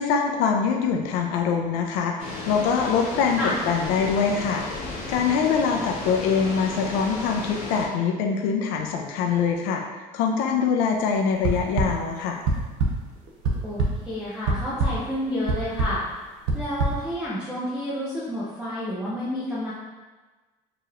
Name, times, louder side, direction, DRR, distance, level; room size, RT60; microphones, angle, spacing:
voice 1, 0.0-3.4 3.7-4.6 5.1-9.8 10.1-12.4, left 6 dB, 90° left, 2 dB, 0.4 m, -24 dB
sound 1, 2.2-7.9, left 2 dB, 65° left, 1.2 m, -34 dB
sound 2, 11.4-11.9 12.5-12.9 13.3-13.9 14.5-14.9 15.5-15.9 16.5-16.9, right 3 dB, 80° right, 0.7 m, -21 dB
voice 2, 13.6-16.0 16.5-19.7, left 1 dB, 5° right, -9 dB, 0.5 m, -30 dB
4.7 x 2.9 x 2.4 m, 1.3 s
cardioid pair, 160°, 16 cm